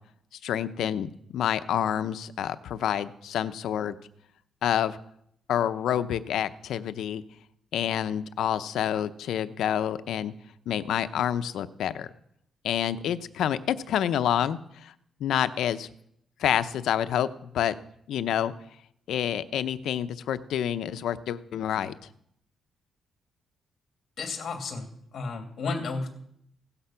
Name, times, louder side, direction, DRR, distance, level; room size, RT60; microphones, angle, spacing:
voice 1, 0.4-4.0 4.6-5.0 5.5-7.2 7.7-10.3 10.7-12.1 12.6-14.9 15.2-15.9 16.4-17.7 18.1-18.5 19.1-21.9, left 10 dB, 90° left, 12 dB, 0.8 m, -28 dB
voice 2, 24.2-26.1, left 4 dB, 50° left, 5 dB, 2.7 m, -33 dB
16.5 x 13.0 x 5.8 m, 0.70 s
wide cardioid pair, 155°, 0 cm